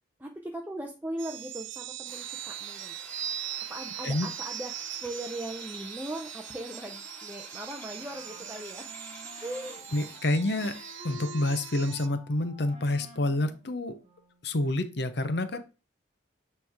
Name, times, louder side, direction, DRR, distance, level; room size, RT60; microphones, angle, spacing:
voice 1, 0.2-3.0 3.7-8.9 9.4-9.9 15.5-15.6, right 1 dB, 10° right, 2 dB, 0.6 m, -39 dB
sound 1, 1.2-12.1, right 12 dB, 75° right, 0.4 m, -41 dB
Drill, 2.1-11.3, left 1 dB, 10° left, 1.1 m, -49 dB
Wind instrument woodwind instrument, 8.0-14.6, left 1 dB, 30° right, 2.2 m, -50 dB
voice 2, 9.9-10.8 11.0-14.0 14.4-15.6, left 1 dB, 60° left, 10 dB, 0.8 m, -28 dB
8.9 x 3.4 x 3.6 m, 0.32 s
head